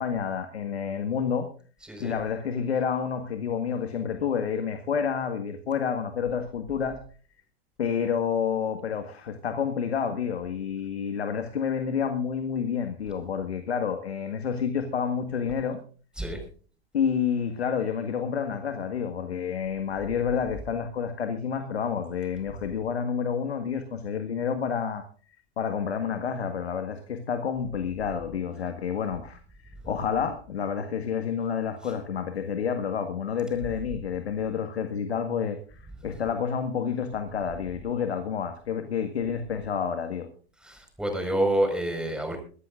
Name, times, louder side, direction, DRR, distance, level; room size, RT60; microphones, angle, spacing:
voice 1, 0.0-1.5 2.0-7.0 7.8-15.8 16.9-25.0 25.6-29.4 29.8-35.6 36.0-40.3, left 7 dB, 75° left, 7 dB, 1.9 m, -29 dB
voice 2, 1.8-2.2 16.1-16.4 29.9-30.0 31.8-31.9 35.9-36.2 40.6-42.4, right 1 dB, 5° right, 4 dB, 5.1 m, -29 dB
24.0 x 13.5 x 2.6 m, 0.42 s
hypercardioid pair, 110°, 32 cm